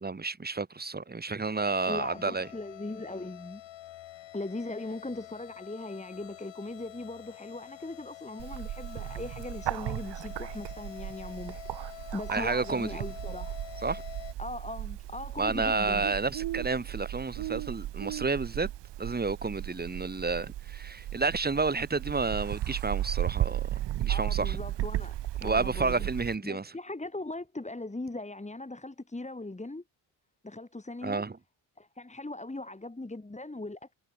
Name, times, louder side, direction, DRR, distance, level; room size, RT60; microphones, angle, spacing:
voice 1, 0.0-2.5 12.3-13.0 13.8-14.0 15.4-18.7 19.0-24.6 25.4-26.7 31.0-31.4, right 4 dB, 20° right, 1.8 m, -30 dB
sound 1, 1.6-14.3, left 14 dB, 80° left, 3.6 m, -47 dB
voice 2, 1.9-3.6 4.3-13.6 14.4-16.1 24.1-26.1 26.4-29.8 30.4-31.2 31.8-33.9, left 2 dB, 15° left, 4.2 m, -39 dB
Bird, 8.4-26.4, right 14 dB, 70° right, 1.2 m, -35 dB
supercardioid pair, 65°, 44 cm